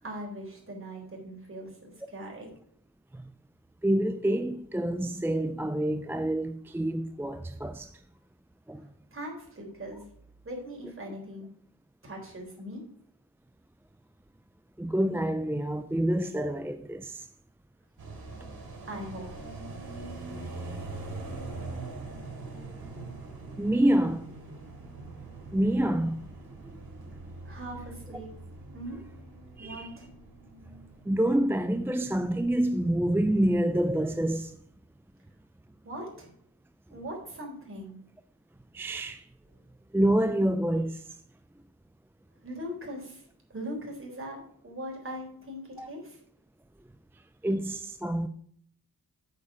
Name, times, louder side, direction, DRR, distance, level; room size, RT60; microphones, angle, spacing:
voice 1, 0.0-2.5 9.1-10.0 10.4-11.5 12.0-12.8 18.8-19.4 27.4-28.3 28.7-29.0 29.6-30.1 35.8-36.3 36.9-38.0 42.4-43.2 43.5-46.2, equal, 35° right, 3.8 m, -40 dB
voice 2, 3.8-8.0 8.7-8.9 14.8-17.3 22.5-22.6 23.6-24.3 25.5-26.2 29.6-29.9 31.1-34.6 38.7-39.2 39.9-41.0 45.8-45.9 47.4-48.3, right 1 dB, 5° right, 0.3 m, -27 dB
sound 1, 18.0-33.1 33.4-33.5 33.7-34.3, right 3 dB, 75° right, 3.5 m, -43 dB
8.4 x 7.4 x 4.8 m
wide cardioid pair, 125°, 37 cm